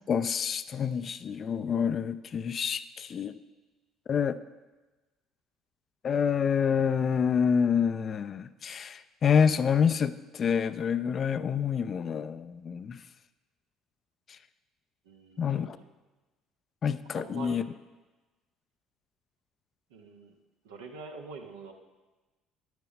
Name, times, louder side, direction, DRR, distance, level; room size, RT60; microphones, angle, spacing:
voice 1, 0.1-3.4 4.1-4.4 6.0-13.0 15.4-15.8 16.8-17.6, left 7 dB, 45° left, 13 dB, 0.5 m, -27 dB
voice 2, 15.0-15.8 17.1-17.7 19.9-20.4 20.6-21.7, right 4 dB, 75° right, 2 dB, 1.2 m, -44 dB
10.5 x 9.5 x 5.5 m, 1.2 s
figure-of-eight pair, 55°, 0 cm